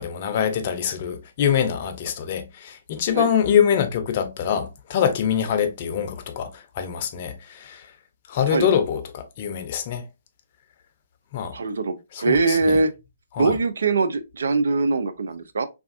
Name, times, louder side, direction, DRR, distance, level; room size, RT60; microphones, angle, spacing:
voice 1, 0.0-7.9 8.3-10.0 11.3-11.5 12.1-12.8 13.3-13.5, left 8 dB, 45° left, 0.5 m, -24 dB
voice 2, 11.5-12.9 13.4-15.7, right 3 dB, 70° right, 0.4 m, -22 dB
3.3 x 2.4 x 2.4 m
figure-of-eight pair, 130°, 0 cm